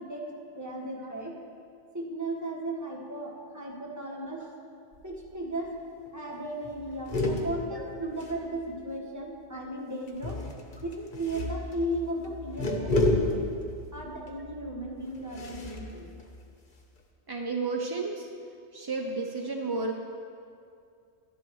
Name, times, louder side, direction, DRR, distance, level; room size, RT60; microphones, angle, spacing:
voice 1, 0.0-1.4 1.9-4.5 5.0-5.8 6.1-10.4 10.8-13.5 13.9-16.1, right 1 dB, 15° right, -2 dB, 1.3 m, -36 dB
sound 1, 4.9-5.4 5.7-5.8 6.1-6.3 6.6-9.0 10.1-17.0, left 2 dB, 45° left, 1.1 m, -32 dB
voice 2, 17.3-18.3 18.7-19.9, right 3 dB, 35° right, 1 dB, 0.3 m, -32 dB
12.5 x 11.0 x 3.1 m, 2.4 s
omnidirectional pair, 1.3 m